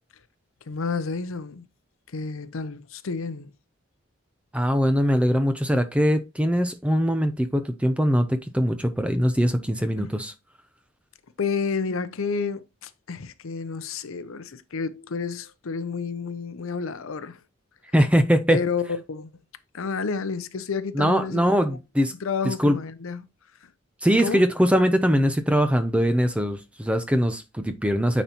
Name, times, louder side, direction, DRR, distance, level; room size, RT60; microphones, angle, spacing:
voice 1, 0.7-1.7 2.1-3.5 10.0-10.1 11.4-17.4 18.5-19.3 19.7-21.8 22.2-23.3 23.6-23.7 24.2-24.4, left 5 dB, 80° left, 0.6 m, -30 dB
voice 2, 4.5-10.3 17.9-18.6 20.9-22.1 22.4-22.8 24.0-28.2, equal, 5° right, 0.5 m, -22 dB
9.0 x 4.2 x 2.9 m
head